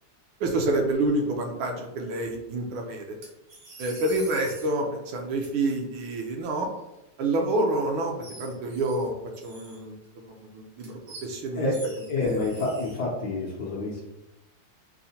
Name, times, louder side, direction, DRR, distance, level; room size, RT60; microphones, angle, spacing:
voice 1, 0.4-3.2 3.8-6.7 7.2-8.1 8.4-9.1 9.4-10.0 10.5-11.7 12.2-12.4, right 2 dB, 75° right, 2 dB, 1.4 m, -28 dB
sound 1, 3.2-4.7 5.4-5.5 7.5-7.6 8.2-9.0 9.3-10.1 10.8-11.3 11.7-13.0, right 2 dB, 60° right, 1.0 m, -45 dB
voice 2, 12.1-14.0, left 2 dB, 65° left, -4 dB, 1.1 m, -28 dB
5.6 x 2.1 x 2.7 m, 0.92 s
omnidirectional pair, 2.4 m